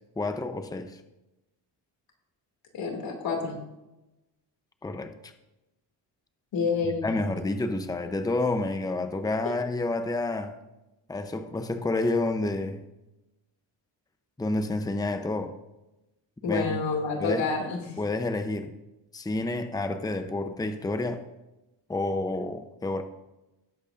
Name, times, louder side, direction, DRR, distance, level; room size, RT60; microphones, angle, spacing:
voice 1, 0.2-1.0 4.8-5.3 6.8-10.6 11.1-12.8 14.4-15.5 16.5-16.8 17.2-17.4 18.0-18.7 19.1-21.2 21.9-23.0, left 2 dB, 10° left, 8 dB, 0.8 m, -29 dB
voice 2, 2.7-3.6 6.5-7.1 16.4-18.0, left 4 dB, 75° left, 1 dB, 2.7 m, -28 dB
18.0 x 8.1 x 2.6 m, 0.97 s
cardioid pair, 95°, 45 cm